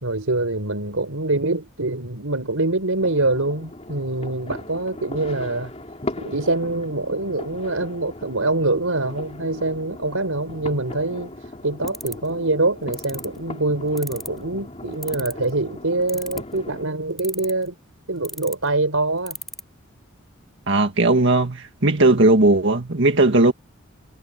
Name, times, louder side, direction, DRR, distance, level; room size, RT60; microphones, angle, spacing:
voice 1, 0.0-5.7 6.2-11.3 11.6-17.7 18.1-19.4, right 2 dB, 80° right, 4.6 m, -24 dB
sound 1, 3.0-16.9, left 1 dB, 30° left, 3.8 m, -38 dB
sound 2, 11.9-12.3 12.9-13.3 14.0-14.4 15.0-15.5 16.1-16.6 17.2-17.7 18.2-18.5 19.3-19.6, left 1 dB, ahead, 4.4 m, -32 dB
voice 2, 20.7-23.5, right 2 dB, 60° right, 1.9 m, -17 dB
head